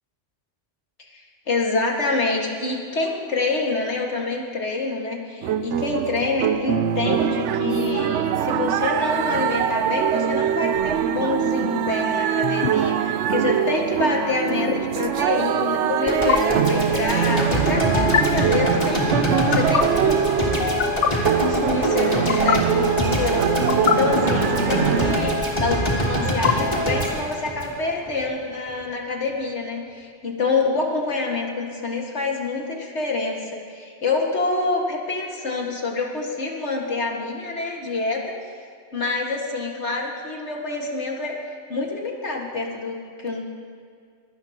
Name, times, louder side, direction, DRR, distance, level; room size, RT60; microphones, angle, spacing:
voice 1, 1.5-20.1 21.4-25.8 26.1-38.2 38.9-43.4, left 3 dB, 75° left, -1 dB, 2.1 m, -27 dB
sound 1, 5.4-25.2, right 9 dB, 90° right, 0.9 m, -23 dB
sound 2, 12.4-12.7 14.5-14.7 16.1-16.4 17.9-18.2 19.3-19.8 20.6-21.1 22.1-22.6 23.5-23.9 25.0-25.5 26.2-27.1, left 8 dB, 55° left, 0.7 m, -24 dB
sound 3, 16.1-28.3, equal, 35° left, 2.7 m, -24 dB
23.5 x 17.5 x 2.9 m, 2.1 s
omnidirectional pair, 1.2 m